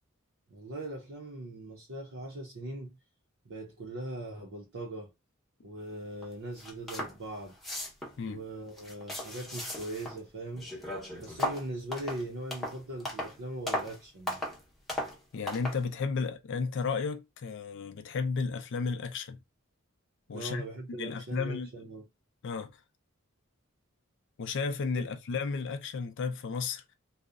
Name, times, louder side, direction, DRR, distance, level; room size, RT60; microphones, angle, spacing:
voice 1, 0.5-3.0 3.4-5.1 5.6-7.6 8.3-10.7 11.2-14.4 20.3-22.0, right 1 dB, 60° right, 0.6 m, -40 dB
sound 1, 6.2-6.3 6.6-7.2 7.5-8.2 8.7-10.2 10.5-13.4 13.7-14.0 14.3-14.6 14.9-15.2 15.5-15.8, left 1 dB, ahead, 0.7 m, -36 dB
voice 2, 15.3-19.4 20.3-21.7 22.4-22.7 24.4-26.8, left 5 dB, 60° left, 0.4 m, -33 dB
2.7 x 2.0 x 2.4 m
head